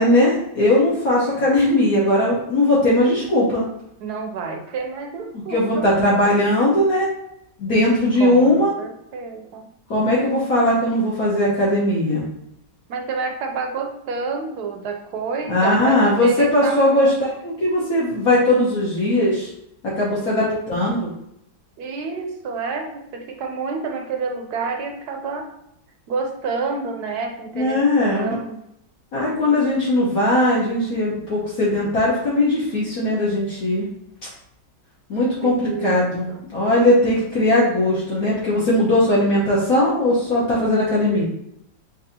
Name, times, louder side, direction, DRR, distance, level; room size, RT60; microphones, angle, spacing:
voice 1, 0.0-3.6 5.5-7.1 7.6-8.7 9.9-12.2 15.5-19.5 19.8-21.1 27.5-28.3 29.1-33.9 35.1-41.2, left 1 dB, 55° left, -6 dB, 1.4 m, -19 dB
voice 2, 4.0-5.9 8.2-9.7 12.9-17.1 20.2-20.8 21.8-25.5 26.1-28.6 35.4-36.0 36.3-36.5, right 4 dB, 70° right, 4 dB, 1.0 m, -29 dB
7.0 x 2.7 x 2.7 m, 0.77 s
omnidirectional pair, 1.9 m